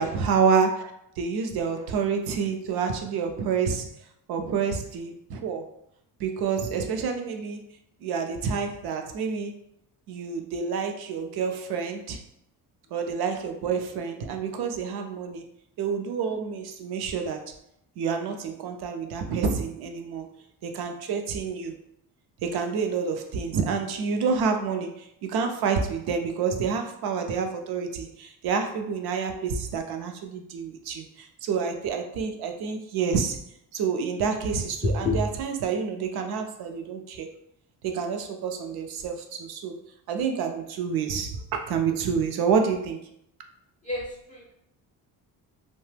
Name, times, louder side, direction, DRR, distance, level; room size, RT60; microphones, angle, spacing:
voice 1, 0.0-3.9 4.3-5.7 6.2-7.6 8.0-9.5 10.1-12.2 12.9-15.4 15.8-17.5 18.0-20.3 20.6-21.7 22.4-33.4 33.7-37.3 37.8-39.8 40.1-43.0, right 6 dB, 75° right, 5 dB, 0.5 m, -28 dB
voice 2, 34.8-35.2 43.8-44.5, left 3 dB, 20° left, -2 dB, 0.4 m, -28 dB
2.8 x 2.1 x 3.2 m, 0.75 s
cardioid pair, 140°, 38 cm